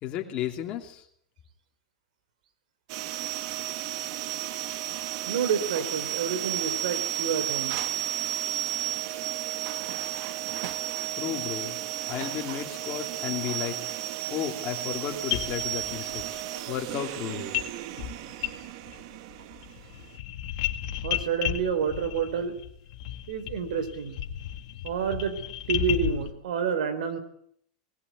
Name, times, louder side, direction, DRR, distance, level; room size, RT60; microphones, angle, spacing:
voice 1, 0.0-1.0 11.2-11.8 12.1-13.8 14.3-17.5, left 10 dB, 30° left, 3 dB, 2.8 m, -33 dB
sound 1, 2.9-20.2, right 13 dB, 45° right, 1.1 m, -33 dB
voice 2, 5.3-7.8 21.0-22.6 23.3-24.2 24.8-25.4 25.7-27.2, right 6 dB, 80° right, 11 dB, 3.8 m, -28 dB
sound 2, 15.0-15.1 15.3-16.2 17.5-17.7 18.0-19.0 19.3-26.3, left 12 dB, 55° left, 2.0 m, -33 dB
20.0 x 15.5 x 9.6 m, 0.67 s
supercardioid pair, 170°, 4 cm